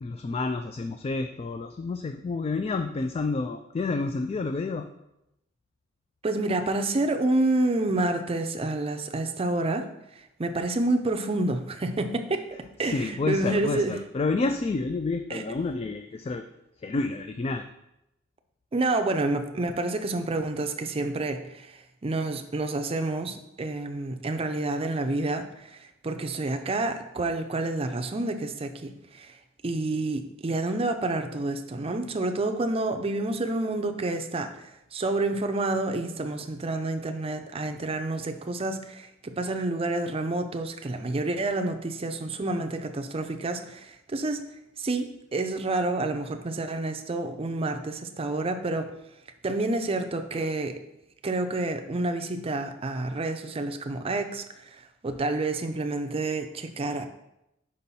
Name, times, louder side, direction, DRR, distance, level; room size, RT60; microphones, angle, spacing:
voice 1, 0.0-4.9 12.5-16.4 16.8-17.7 55.1-55.2, left 3 dB, 30° left, 7 dB, 0.3 m, -29 dB
voice 2, 6.2-9.9 10.4-12.5 12.8-13.9 15.3-15.4 18.7-25.5 25.7-29.3 29.6-34.6 34.9-44.4 44.8-48.9 49.4-50.8 51.2-54.4 55.0-57.1, right 2 dB, 30° right, 6 dB, 0.5 m, -28 dB
5.4 x 5.2 x 4.2 m, 0.85 s
head